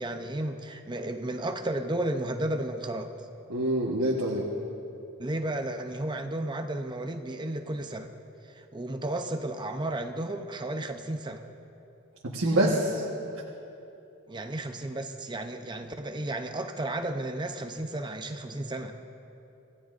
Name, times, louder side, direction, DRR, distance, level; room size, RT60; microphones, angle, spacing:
voice 1, 0.0-3.1 5.2-8.1 8.5-11.4 14.3-18.9, right 1 dB, 20° right, 6 dB, 0.6 m, -33 dB
voice 2, 3.5-4.5 12.2-13.0, right 1 dB, 65° right, -3 dB, 1.3 m, -25 dB
26.5 x 15.5 x 2.5 m, 2.8 s
head